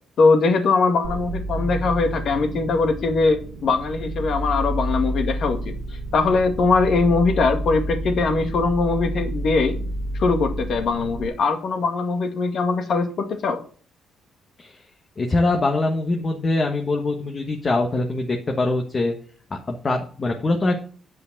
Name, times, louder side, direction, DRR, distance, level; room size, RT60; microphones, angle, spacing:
voice 1, 0.2-5.7 6.1-9.8 10.2-13.6, left 4 dB, 65° left, 6 dB, 1.9 m, -21 dB
sound 1, 1.0-11.3, right 1 dB, 90° right, 1.4 m, -29 dB
voice 2, 15.2-19.1 19.5-20.7, left 2 dB, 35° left, 2 dB, 1.4 m, -23 dB
8.7 x 5.2 x 7.3 m, 0.43 s
cardioid pair, 90°, 0 cm